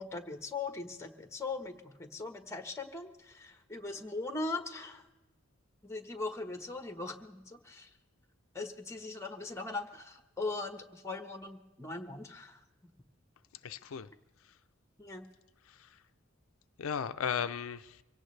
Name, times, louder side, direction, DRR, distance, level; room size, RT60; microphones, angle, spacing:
voice 1, 0.0-5.1 5.8-7.9 8.5-12.6 15.0-15.3, left 3 dB, 15° left, 7 dB, 1.3 m, -40 dB
voice 2, 13.6-14.1 14.4-14.6 15.7-16.0 16.8-18.0, left 7 dB, 75° left, 10 dB, 0.5 m, -36 dB
24.0 x 17.5 x 3.3 m, 1.1 s
head